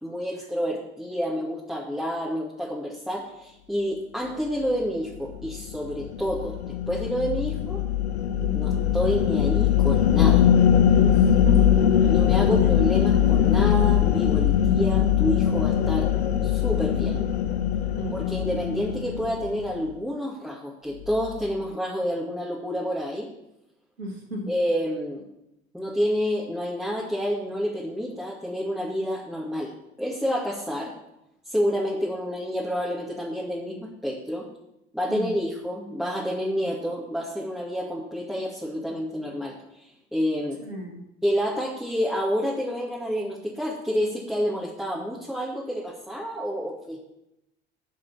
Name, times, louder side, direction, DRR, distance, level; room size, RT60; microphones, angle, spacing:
voice 1, 0.0-7.8 8.5-10.4 12.0-16.1 16.4-17.3 18.1-23.3 24.5-25.2 25.7-29.7 30.0-30.9 31.5-34.5 34.9-39.5 40.1-40.6 41.2-47.0, equal, ahead, -5 dB, 2.2 m, -29 dB
sound 1, 5.3-19.8, left 9 dB, 80° left, 0.6 m, -21 dB
voice 2, 8.4-8.8 11.0-11.7 12.0-12.1 12.5-12.7 18.0-18.4 24.0-24.5 35.1-35.4 40.6-41.0, right 1 dB, 80° right, 0 dB, 2.1 m, -34 dB
11.5 x 4.8 x 7.0 m, 0.86 s
figure-of-eight pair, 60°, 31 cm